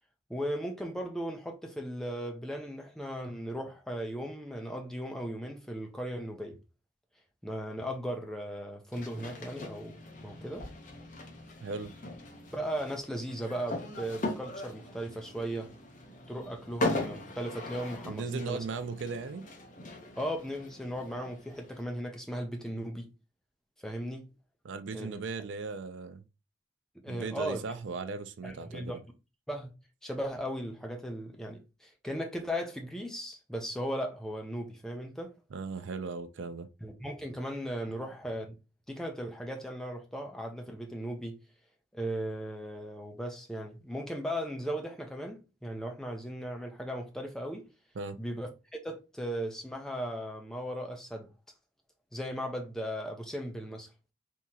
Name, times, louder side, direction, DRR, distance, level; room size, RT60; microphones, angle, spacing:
voice 1, 0.3-6.6 7.4-10.0 10.2-10.7 12.5-15.7 16.3-18.6 20.2-23.1 23.8-24.3 24.9-25.2 27.0-27.6 28.4-29.0 29.5-29.8 30.0-35.3 36.8-38.6 38.9-41.4 41.9-47.7 48.2-48.5 48.8-51.3 52.1-53.9, equal, 5° left, 0.5 m, -37 dB
sound 1, 8.9-21.8, left 2 dB, 40° left, 0.7 m, -40 dB
voice 2, 11.6-11.9 18.1-19.5 24.6-26.2 27.1-29.0 35.5-36.7 48.0-48.2, right 4 dB, 80° right, 0.4 m, -37 dB
3.5 x 2.8 x 2.8 m
head